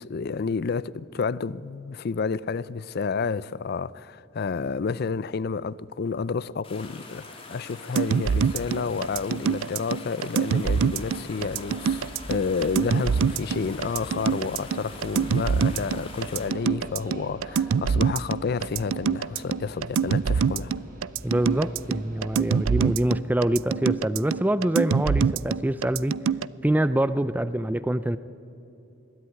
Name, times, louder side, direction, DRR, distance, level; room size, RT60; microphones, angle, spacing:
voice 1, 0.0-20.7, left 5 dB, 50° left, 0.4 m, -30 dB
sound 1, 6.6-16.5, left 3 dB, 30° left, 3.0 m, -44 dB
sound 2, 8.0-26.5, right 6 dB, 80° right, 0.4 m, -25 dB
sound 3, 11.4-23.0, equal, 45° right, 4.8 m, -44 dB
voice 2, 21.2-26.2 26.6-28.2, right 1 dB, 10° right, 0.4 m, -25 dB
21.0 x 14.0 x 9.8 m
head